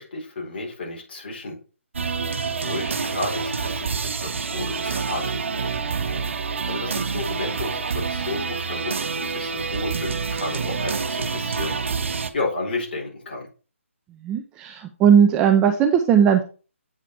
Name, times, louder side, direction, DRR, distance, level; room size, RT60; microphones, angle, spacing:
voice 1, 0.0-1.6 2.6-6.2 6.6-11.8 12.3-13.5, left 2 dB, 50° left, -2 dB, 4.1 m, -32 dB
sound 1, 1.9-12.3, right 5 dB, 60° right, 1.1 m, -27 dB
voice 2, 14.2-16.4, right 8 dB, 10° right, 6 dB, 0.4 m, -17 dB
8.5 x 4.9 x 4.6 m, 0.35 s
hypercardioid pair, 165°, 7 cm